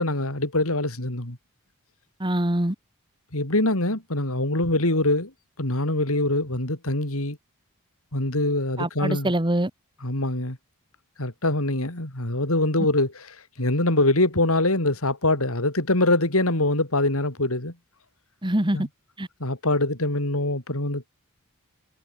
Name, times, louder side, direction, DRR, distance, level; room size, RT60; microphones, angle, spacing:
voice 1, 0.0-1.4 3.3-5.3 5.6-7.4 8.1-9.3 10.0-10.6 11.2-13.3 13.6-17.7 18.7-18.9 19.4-21.1, left 2 dB, 70° left, 4.4 m, -24 dB
voice 2, 2.2-2.8 8.8-9.7 18.4-18.9 19.2-19.3, right 1 dB, 20° right, 2.0 m, -24 dB
head